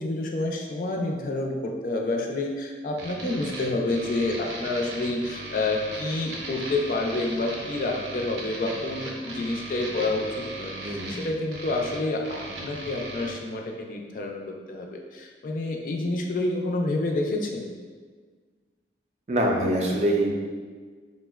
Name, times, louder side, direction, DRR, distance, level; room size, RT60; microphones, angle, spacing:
voice 1, 0.0-14.4 14.7-17.7, left 2 dB, 50° left, 1 dB, 0.3 m, -28 dB
sound 1, 3.0-13.3, right 2 dB, 85° right, 0.5 m, -38 dB
voice 2, 10.8-11.2 19.3-20.3, right 1 dB, 40° right, 0 dB, 0.4 m, -24 dB
4.9 x 2.0 x 2.2 m, 1.5 s
head